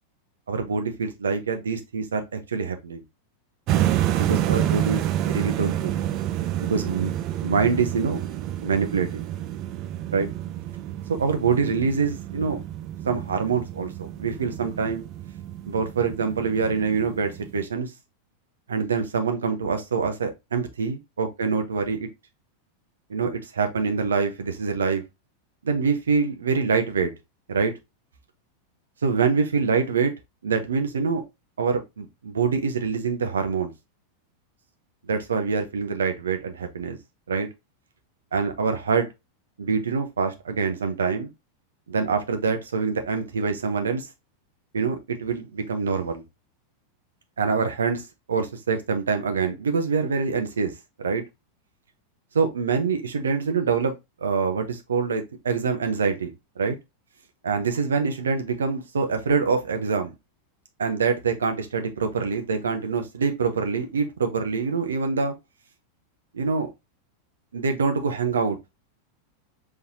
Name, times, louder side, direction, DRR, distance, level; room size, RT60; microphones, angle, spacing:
voice 1, 0.5-3.0 4.2-6.0 6.6-7.1 7.4-8.2 8.6-9.2 10.1-10.3 11.1-12.6 13.0-15.1 15.7-17.9 18.7-22.1 23.1-25.0 25.6-27.1 27.5-27.7 29.0-30.1 30.4-31.2 31.6-33.7 35.1-37.0 37.3-37.5 38.3-39.1 39.6-41.3 41.9-44.1 44.7-46.2 47.4-50.7 51.0-51.2 52.3-56.8 57.4-60.1 60.8-65.3 66.3-66.7 67.5-68.6, right 5 dB, 70° right, 0.9 m, -25 dB
sound 1, 3.7-17.7, right 12 dB, 40° right, 0.5 m, -29 dB
5.4 x 3.5 x 2.7 m
figure-of-eight pair, 90°, 0 cm